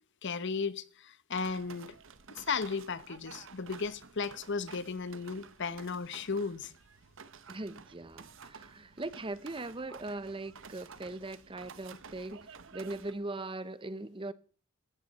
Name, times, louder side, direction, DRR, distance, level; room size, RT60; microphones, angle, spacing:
voice 1, 0.2-1.9 2.3-6.7, left 5 dB, 55° left, 0.9 m, -35 dB
sound 1, 1.3-13.1, right 5 dB, 60° right, 1.1 m, -52 dB
voice 2, 7.5-12.5 12.7-14.3, right 2 dB, 25° right, 0.8 m, -40 dB
16.5 x 14.0 x 4.2 m
head